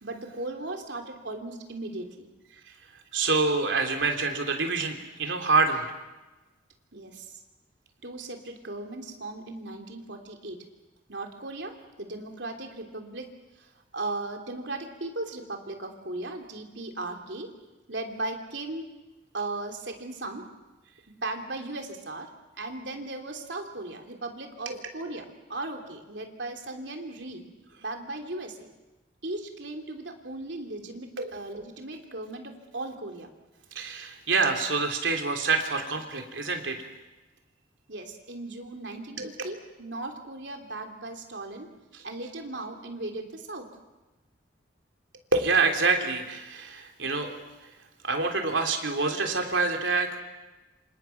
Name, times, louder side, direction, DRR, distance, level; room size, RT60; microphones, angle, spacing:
voice 1, 0.0-2.3 6.9-7.4 8.0-10.6 11.1-13.3 13.6-17.5 17.9-18.9 19.3-20.5 21.1-22.3 22.6-27.5 27.8-28.7 29.2-33.3 37.9-41.7 42.0-43.7, right 2 dB, 70° right, 3 dB, 3.2 m, -37 dB
voice 2, 3.1-5.8 24.6-24.8 31.2-31.4 33.7-36.9 39.2-39.3 41.9-42.0 45.3-47.4 48.0-50.2, right 4 dB, 90° right, 4 dB, 3.3 m, -26 dB
27.5 x 26.5 x 5.9 m, 1.1 s
head